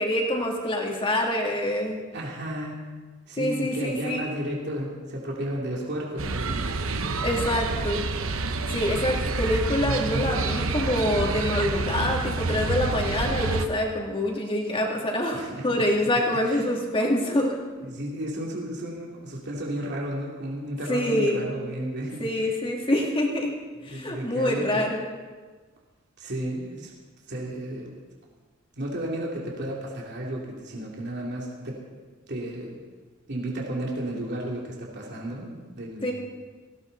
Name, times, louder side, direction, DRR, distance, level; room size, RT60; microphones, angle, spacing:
voice 1, 0.0-2.0 3.4-4.3 7.2-8.0 8.7-15.4 15.6-17.6 20.9-21.5 22.2-23.5 23.8-25.0 36.0-36.1, left 1 dB, 25° left, -1 dB, 2.7 m, -26 dB
voice 2, 2.1-2.7 3.3-6.6 15.3-15.8 16.4-16.7 17.8-22.3 23.8-24.9 26.2-26.9 27.3-28.0 28.8-31.8 32.3-32.8 33.3-36.1, right 1 dB, 55° right, -2 dB, 2.9 m, -33 dB
sound 1, 6.2-13.7, right 3 dB, 75° right, 1.0 m, -28 dB
18.5 x 16.5 x 4.1 m, 1.4 s
head